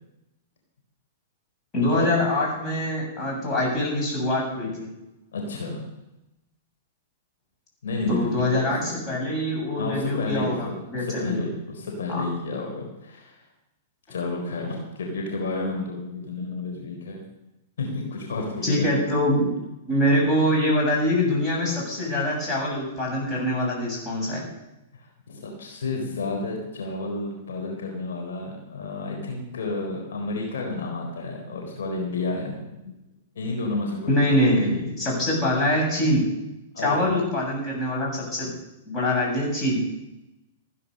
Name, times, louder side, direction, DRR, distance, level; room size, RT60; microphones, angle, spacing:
voice 1, 1.7-4.9 8.1-11.4 12.1-12.2 18.6-19.5 19.9-24.5 34.1-36.3 36.8-38.5 38.9-39.8, left 1 dB, 25° left, -2 dB, 7.5 m, -24 dB
voice 2, 5.3-5.8 7.8-9.1 9.8-13.4 14.1-17.2 17.8-18.9 24.9-32.6 33.3-34.3 36.7-37.2, left 3 dB, 75° left, 0 dB, 4.2 m, -31 dB
16.0 x 9.9 x 6.7 m, 0.92 s
hypercardioid pair, 120°, 0 cm